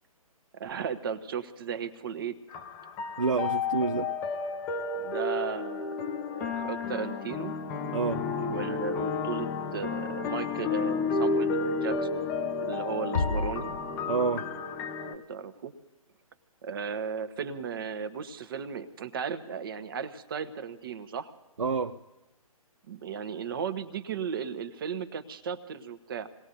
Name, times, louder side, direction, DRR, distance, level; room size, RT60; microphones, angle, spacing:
voice 1, 0.5-2.4 5.0-7.5 8.4-12.1 12.6-13.7 15.1-15.7 16.6-21.3 22.9-26.3, right 6 dB, 40° right, 11 dB, 1.1 m, -35 dB
sound 1, 2.5-15.1, left 4 dB, 10° left, 0.5 m, -32 dB
voice 2, 3.2-4.1 7.9-8.3 14.1-14.5 21.6-22.0, right 4 dB, 60° right, 7 dB, 0.7 m, -28 dB
sound 2, 13.1-14.8, left 3 dB, 65° left, 0.6 m, -32 dB
28.0 x 19.0 x 2.7 m, 0.97 s
figure-of-eight pair, 135°, 19 cm